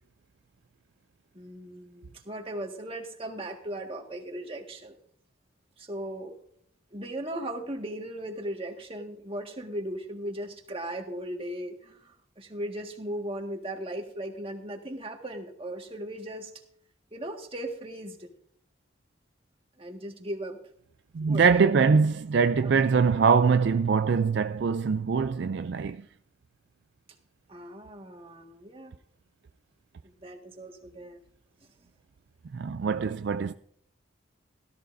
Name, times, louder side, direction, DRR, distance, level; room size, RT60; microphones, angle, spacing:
voice 1, 1.3-4.9 5.8-6.3 6.9-16.5 17.1-18.3 19.8-20.6 21.3-21.7 22.6-22.8 27.5-28.9 30.2-31.2, right 1 dB, 25° right, 1.7 m, -37 dB
voice 2, 21.1-26.1 32.5-33.5, right 5 dB, 55° right, 0.4 m, -23 dB
17.0 x 13.5 x 2.6 m
head